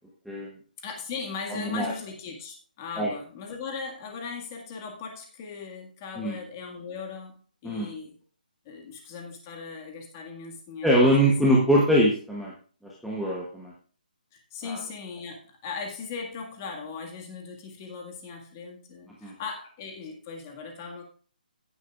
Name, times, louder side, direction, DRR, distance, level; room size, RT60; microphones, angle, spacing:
voice 1, 0.8-7.4 7.6-8.1 8.7-11.3 14.3-21.0, left 5 dB, 20° left, 2 dB, 1.7 m, -38 dB
voice 2, 1.5-1.9 3.0-3.1 6.2-6.4 7.6-7.9 10.8-12.5 12.8-13.7 14.6-14.8 19.2-19.3, equal, ahead, -5 dB, 0.9 m, -23 dB
16.0 x 8.0 x 2.4 m, 0.41 s
hypercardioid pair, 175°, 5 cm